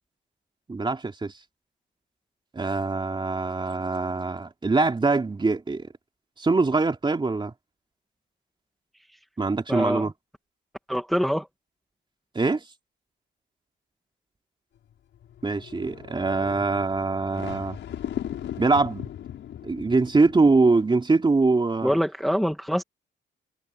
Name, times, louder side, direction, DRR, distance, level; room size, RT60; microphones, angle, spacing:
voice 1, 0.7-1.3 2.5-5.9 6.4-7.5 9.4-10.1 12.3-12.6 15.4-17.8 18.6-19.1 19.6-22.0, right 3 dB, 25° right, 3.0 m, -23 dB
voice 2, 9.7-10.1 10.9-11.5 21.8-22.8, equal, ahead, 2.1 m, -24 dB
sound 1, 14.9-20.6, left 10 dB, 70° left, 6.5 m, -38 dB
cardioid pair, 90°, 20 cm